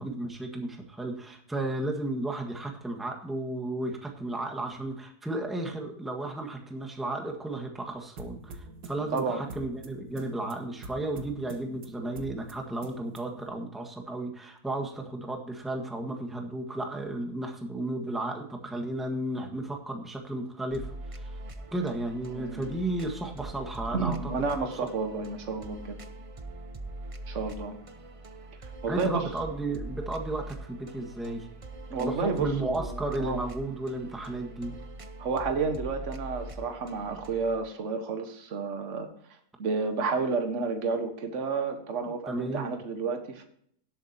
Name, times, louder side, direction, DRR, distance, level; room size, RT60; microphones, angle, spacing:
voice 1, 0.0-21.3 21.7-24.7 28.9-31.5 32.0-34.7 42.3-42.7, right 2 dB, ahead, 2 dB, 1.5 m, -34 dB
sound 1, 8.2-13.5, right 2 dB, 80° right, 1.8 m, -46 dB
voice 2, 9.1-9.4 22.4-22.7 23.9-26.0 27.3-27.8 28.8-29.2 31.9-33.4 35.2-39.1 39.6-43.4, right 4 dB, 50° right, 6 dB, 1.7 m, -31 dB
sound 2, 20.7-37.6, right 2 dB, 30° right, 0.6 m, -42 dB
17.5 x 8.5 x 2.9 m, 0.64 s
omnidirectional pair, 1.7 m